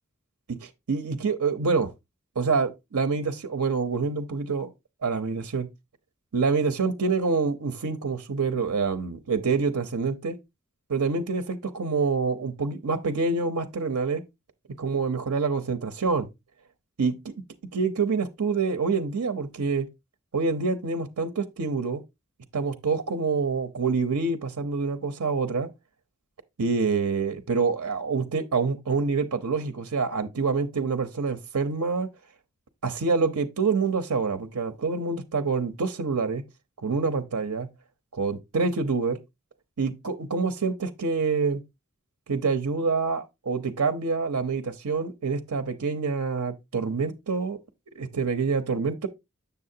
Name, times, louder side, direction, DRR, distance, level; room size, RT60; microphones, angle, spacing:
voice 1, 0.5-1.9 2.4-4.7 5.0-5.7 6.3-10.4 10.9-14.2 14.8-16.3 17.0-17.3 17.7-19.9 20.3-22.0 22.5-25.7 26.6-32.1 32.8-36.4 36.8-37.7 38.1-39.2 39.8-41.6 42.3-47.6 47.9-49.1, right 4 dB, 85° right, 0.8 m, -26 dB
7.0 x 6.7 x 2.7 m
head